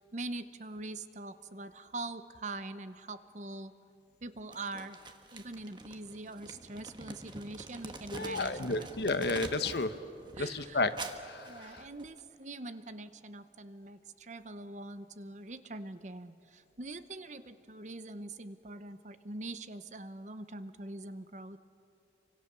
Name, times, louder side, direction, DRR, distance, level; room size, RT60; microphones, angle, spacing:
voice 1, 0.0-3.7 4.2-5.0 5.3-8.9 10.4-10.8 11.4-21.6, right 2 dB, 40° right, 11 dB, 0.9 m, -43 dB
Crumpling crinkling, 4.5-9.9 10.2-12.2, right 3 dB, 25° right, 1.4 m, -46 dB
voice 2, 8.1-9.9 10.4-10.9 11.2-11.9, left 3 dB, 65° left, 10 dB, 1.1 m, -32 dB
28.5 x 25.0 x 6.9 m, 2.7 s
head